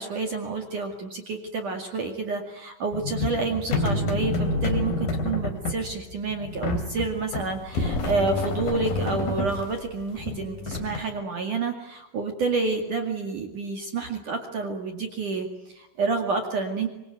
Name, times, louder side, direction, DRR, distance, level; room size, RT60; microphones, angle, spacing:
voice 1, 0.0-16.9, right 4 dB, 50° right, 4 dB, 3.1 m, -29 dB
sound 1, 2.9-11.0, left 2 dB, 50° left, 4.5 m, -28 dB
25.5 x 24.5 x 9.4 m, 0.99 s
omnidirectional pair, 5.8 m